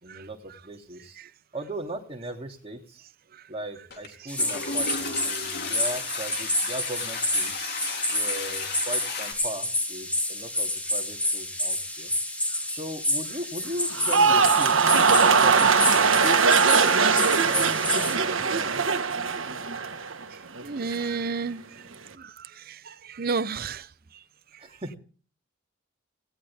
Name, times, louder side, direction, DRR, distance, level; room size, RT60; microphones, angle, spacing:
voice 1, 0.0-1.2 1.5-3.0 3.5-7.5 8.1-12.1 12.7-14.8 15.1-16.4 17.1-18.8 21.5-22.0 24.6-25.0, right 1 dB, 30° right, 2.9 m, -38 dB
Toilet flush, 3.9-4.1 4.3-9.3, left 5 dB, 55° left, 3.3 m, -34 dB
sound 1, 4.3-18.2, left 1 dB, 5° left, 2.8 m, -29 dB
sound 2, 13.9-20.2 20.6-21.1, right 5 dB, 90° right, 1.5 m, -21 dB
voice 2, 20.6-21.6 23.2-23.8, right 4 dB, 50° right, 0.6 m, -29 dB
18.5 x 17.5 x 3.6 m
head